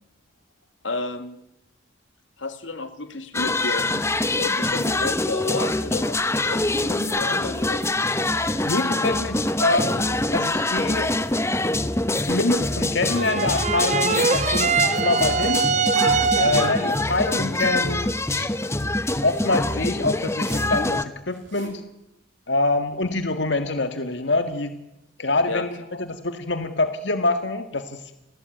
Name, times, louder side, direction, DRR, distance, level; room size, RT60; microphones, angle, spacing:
voice 1, 0.8-1.4 2.4-4.0 4.3-8.0 16.5-16.9 25.2-25.6, left 3 dB, 90° left, 9 dB, 2.4 m, -32 dB
sound 1, 3.3-21.0, left 2 dB, 15° left, 1.0 m, -25 dB
voice 2, 8.7-11.1 12.2-15.6 16.4-18.5 18.8-18.9 19.2-21.8 22.5-24.8 25.2-28.0, left 2 dB, 70° left, 8 dB, 1.8 m, -25 dB
Zipper (clothing), 12.8-13.4 14.1-14.6 15.6-16.4 17.0-18.0 19.0-19.6 20.3-20.7 21.3-21.8, right 3 dB, 80° right, 6.0 m, -45 dB
sound 2, 13.1-17.0, right 5 dB, 40° right, 1.3 m, -23 dB
29.5 x 20.0 x 9.5 m, 0.87 s
head